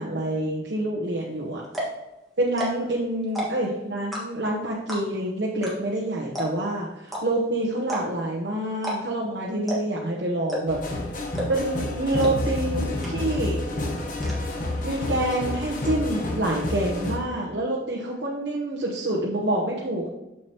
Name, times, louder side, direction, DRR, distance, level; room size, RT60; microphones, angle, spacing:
voice 1, 0.0-1.6 2.4-10.8 11.1-11.2 11.5-13.6 14.8-20.1, right 1 dB, 70° right, -4 dB, 1.0 m, -27 dB
sound 1, 1.2-1.3 1.6-2.0 2.5-2.9 3.2-3.7 4.1-4.5 4.9-5.2 5.6-5.7 6.0-6.1 6.3-6.7 7.1-7.2 7.8-8.3 8.8-9.2 9.7-10.0 10.5-10.9 11.4-11.7 12.2-12.3 12.6-12.7 13.0-13.5 13.7-14.3, equal, ahead, 1.7 m, -30 dB
sound 2, 10.7-17.2, left 1 dB, 50° left, 1.1 m, -29 dB
6.9 x 6.4 x 3.0 m, 0.99 s
head